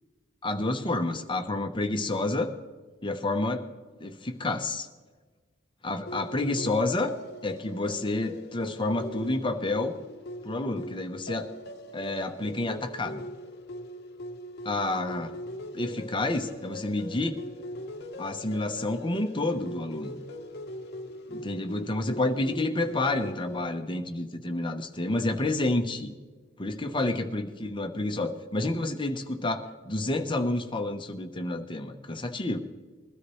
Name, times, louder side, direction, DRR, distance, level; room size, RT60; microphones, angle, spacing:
voice 1, 0.4-2.5 3.0-3.6 4.0-4.9 5.8-7.1 7.4-9.9 10.4-11.5 11.9-13.2 14.6-15.3 15.7-17.4 18.2-20.2 21.3-26.1 26.6-32.6, left 2 dB, 25° left, 6 dB, 0.9 m, -29 dB
sound 1, 6.1-23.7, left 1 dB, 55° left, 0.9 m, -41 dB
21.5 x 13.0 x 3.2 m, 1.4 s
head